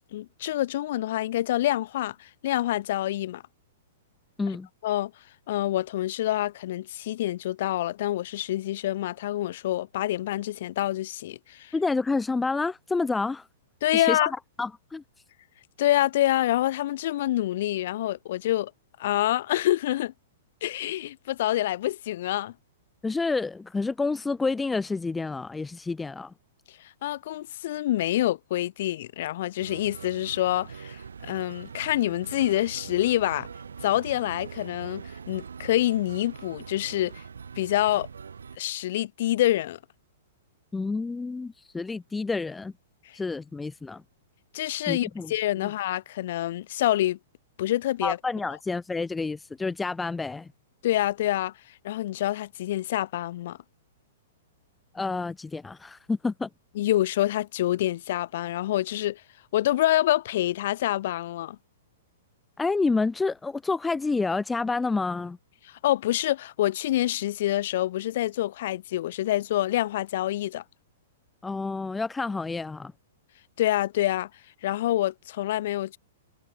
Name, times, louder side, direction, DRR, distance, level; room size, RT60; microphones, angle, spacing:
voice 1, 0.1-3.4 4.8-5.1 5.5-11.7 13.8-14.3 15.8-18.7 19.0-20.1 20.6-22.5 27.0-33.5 33.8-37.2 37.6-38.1 38.6-39.8 44.5-47.2 47.6-48.2 50.8-51.5 51.8-53.6 56.8-59.2 59.5-61.6 65.8-70.6 73.6-74.3 74.6-76.0, left 14 dB, 55° left, 0.9 m, -26 dB
voice 2, 11.7-13.5 13.9-14.3 14.6-15.0 23.0-26.3 40.7-42.7 43.1-44.0 44.9-45.7 48.0-50.5 54.9-56.5 62.6-65.4 71.4-72.9, left 3 dB, 10° left, 0.4 m, -29 dB
sound 1, 29.6-38.6, right 6 dB, 75° right, 1.1 m, -42 dB
figure-of-eight pair, 110°, 0 cm